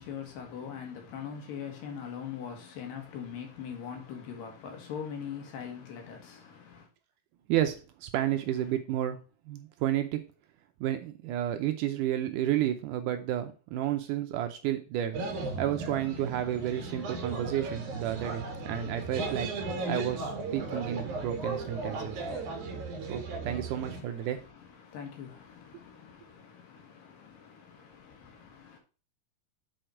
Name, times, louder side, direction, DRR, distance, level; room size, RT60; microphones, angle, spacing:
voice 1, 0.0-6.9 8.3-8.7 23.8-28.8, left 7 dB, 75° left, 3.2 m, -42 dB
voice 2, 7.5-9.2 9.5-10.2 10.8-15.2 15.6-19.5 19.9-22.2 23.1-24.4, right 12 dB, 80° right, 2.0 m, -31 dB
sound 1, 15.1-24.0, right 3 dB, 60° right, 3.0 m, -36 dB
7.9 x 4.3 x 4.4 m
omnidirectional pair, 4.0 m